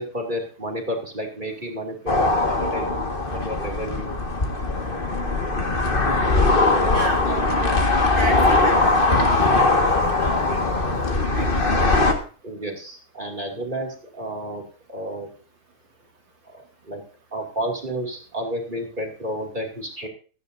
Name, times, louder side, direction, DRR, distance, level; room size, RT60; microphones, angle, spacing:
voice 1, 0.0-4.2 7.2-7.8 12.4-15.3 16.5-17.0 17.3-20.1, right 1 dB, 20° right, 1 dB, 2.6 m, -31 dB
sound 1, 2.1-12.1, left 2 dB, 25° left, 1.7 m, -20 dB
voice 2, 6.9-7.2 7.5-7.8 8.1-10.9 11.4-11.5, right 1 dB, 65° right, 2 dB, 3.3 m, -34 dB
16.0 x 14.0 x 2.7 m, 0.38 s
omnidirectional pair, 2.3 m